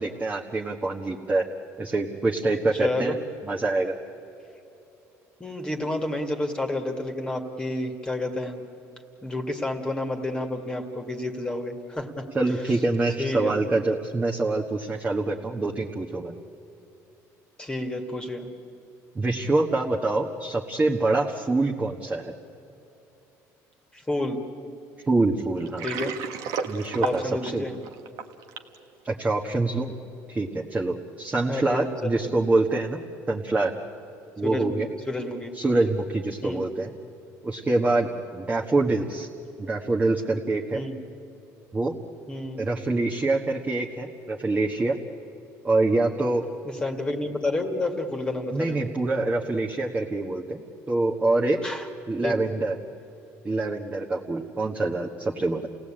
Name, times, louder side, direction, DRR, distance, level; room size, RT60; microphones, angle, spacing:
voice 1, 0.0-1.5 1.8-3.2 3.4-3.9 12.3-16.3 19.1-22.3 25.1-25.9 26.7-27.7 29.0-29.9 30.3-33.0 33.3-33.7 34.4-34.9 35.5-36.9 37.4-39.3 39.6-40.8 41.7-41.9 42.6-45.0 45.6-46.4 48.5-51.6 52.1-52.7 53.4-55.7, right 2 dB, 20° right, -1 dB, 1.5 m, -25 dB
voice 2, 2.7-3.1 5.4-8.6 9.2-12.3 12.6-12.7 13.2-13.5 17.6-18.5 23.9-24.4 25.8-26.2 27.0-27.7 31.5-32.5 34.4-35.5 36.4-36.6 40.7-41.0 42.3-42.6 46.7-48.8 51.6-51.8 52.2-52.3, left 2 dB, 15° left, 3 dB, 2.0 m, -30 dB
Water, 25.6-28.8, right 7 dB, 75° right, 1.5 m, -32 dB
29.0 x 17.5 x 8.8 m, 2.9 s
cardioid pair, 120°, 6 cm